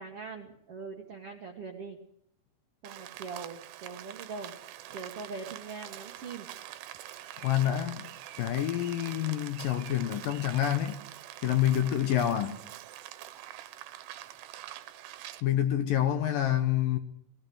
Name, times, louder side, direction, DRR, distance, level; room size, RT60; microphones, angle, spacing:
voice 1, 0.0-2.0 2.8-4.5 4.9-6.5, right 4 dB, 60° right, 1.5 m, -42 dB
Rain, 2.9-15.4, right 13 dB, 80° right, 3.0 m, -45 dB
voice 2, 7.4-8.1 8.4-11.0 11.4-12.6 15.4-17.0, left 11 dB, 75° left, 2.2 m, -27 dB
20.0 x 16.5 x 7.8 m
omnidirectional pair, 4.9 m